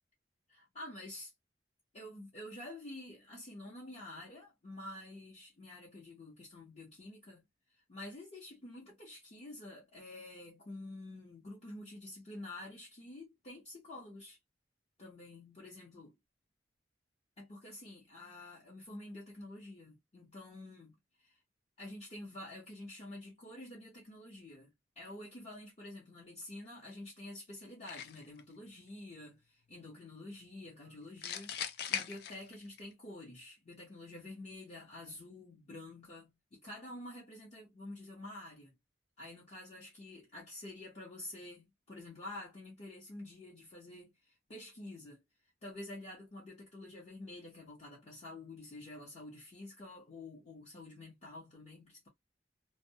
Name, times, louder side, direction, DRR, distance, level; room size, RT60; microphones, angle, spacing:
voice 1, 0.5-1.3 1.9-7.4 7.7-14.4 15.0-16.1 17.4-21.4 21.8-38.8 39.2-45.2 45.6-52.1, left 1 dB, 35° left, 0.8 m, -49 dB
sound 1, 27.9-28.4 31.2-32.8, left 8 dB, 60° left, 0.4 m, -39 dB
2.1 x 2.1 x 2.7 m
head